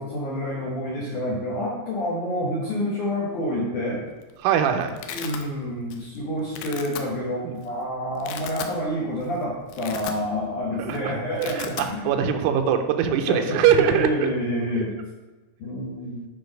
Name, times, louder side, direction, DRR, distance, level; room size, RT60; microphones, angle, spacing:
voice 1, 0.0-4.0 5.1-12.1 13.3-14.9 15.6-16.2, equal, 65° left, -5 dB, 2.0 m, -28 dB
Domestic sounds home sounds, 4.0-4.3 4.6-5.4 5.9-6.2 6.5-7.0 7.6-7.7 8.1-8.8 9.2-9.3 9.6-10.6 10.8-11.0 11.2-11.9, left 9 dB, 90° left, 2.4 m, -36 dB
voice 2, 4.4-5.0 7.4-7.6 10.8-14.3 14.7-14.8, right 8 dB, 85° right, 6 dB, 3.3 m, -22 dB
10.5 x 4.8 x 5.2 m, 1.2 s
omnidirectional pair, 5.6 m